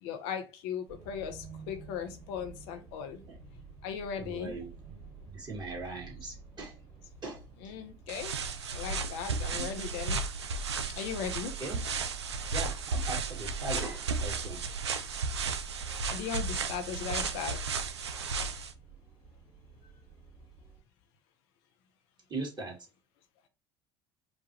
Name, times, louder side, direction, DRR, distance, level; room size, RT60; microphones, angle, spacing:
voice 1, 0.0-3.2 3.8-4.5 7.6-8.4 8.7-10.2 10.9-11.7 16.1-17.6, left 7 dB, 65° left, 0.8 m, -38 dB
sound 1, 0.9-20.8, right 7 dB, 65° right, 1.4 m, -50 dB
voice 2, 4.2-5.0 5.3-6.8 7.2-7.4 9.5-9.7 11.6-11.8 12.5-14.6 22.3-22.8, right 3 dB, 30° right, 2.3 m, -40 dB
sound 2, 8.1-18.7, right 4 dB, 85° right, 0.4 m, -34 dB
5.1 x 2.5 x 3.0 m
hypercardioid pair, 65°, 14 cm